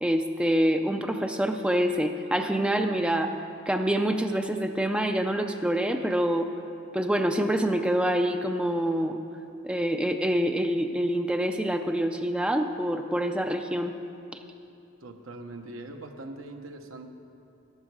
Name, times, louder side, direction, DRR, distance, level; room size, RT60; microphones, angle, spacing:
voice 1, 0.0-3.3 3.7-6.5 6.9-9.2 9.6-14.0, right 1 dB, 5° right, 5 dB, 0.4 m, -26 dB
voice 2, 15.0-17.1, right 2 dB, 75° right, 5 dB, 0.9 m, -41 dB
14.0 x 11.0 x 4.8 m, 2.7 s
head